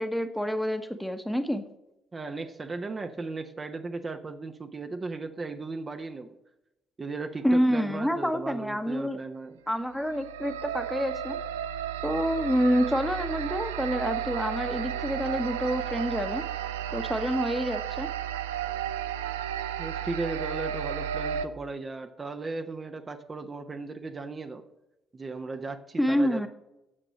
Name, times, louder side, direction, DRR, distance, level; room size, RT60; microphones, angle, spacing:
voice 1, 0.0-1.6 7.4-9.2 9.7-11.4 12.0-16.4 16.9-18.1 26.0-26.5, equal, ahead, 9 dB, 1.2 m, -27 dB
voice 2, 2.1-6.3 7.0-9.6 19.8-24.6 25.1-26.5, right 3 dB, 30° right, 6 dB, 1.0 m, -36 dB
sound 1, 9.9-21.5, right 9 dB, 75° right, 0.4 m, -33 dB
9.9 x 7.5 x 6.3 m, 0.92 s
figure-of-eight pair, 45°, 0 cm